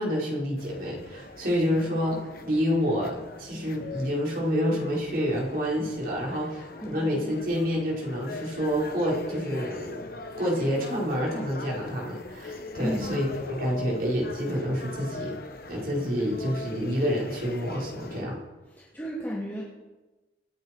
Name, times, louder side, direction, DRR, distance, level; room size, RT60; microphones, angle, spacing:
voice 1, 0.0-10.0 10.4-15.4 15.7-18.4, equal, 50° right, -3 dB, 4.6 m, -28 dB
sound 1, 0.6-18.2, left 2 dB, 55° left, 1.2 m, -40 dB
voice 2, 6.8-7.4 12.8-13.2 18.8-19.6, equal, 10° left, -7 dB, 2.5 m, -33 dB
26.0 x 9.3 x 4.5 m, 1.2 s
head